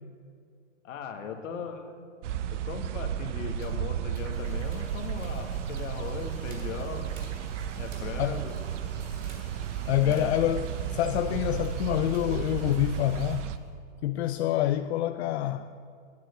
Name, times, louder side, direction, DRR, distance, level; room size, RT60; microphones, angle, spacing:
voice 1, 0.8-1.8 2.5-7.1 7.7-8.6 10.0-10.5, left 6 dB, 75° left, 1.6 m, -38 dB
sound 1, 2.2-13.6, right 9 dB, 65° right, 0.7 m, -33 dB
sound 2, 3.6-3.7 4.1-4.3 4.7-4.8 5.2-5.3 5.7-5.9 6.4-6.7 7.1-7.3 7.8-8.1 8.4-9.4 10.0-10.4 11.6-11.8 12.1-12.2, right 4 dB, 85° right, 3.0 m, -52 dB
sound 3, 4.2-13.8, left 4 dB, 15° left, 1.7 m, -54 dB
voice 2, 9.9-13.5 14.0-15.7, left 12 dB, 55° left, 0.5 m, -27 dB
9.3 x 7.5 x 8.0 m
hypercardioid pair, 125°, 39 cm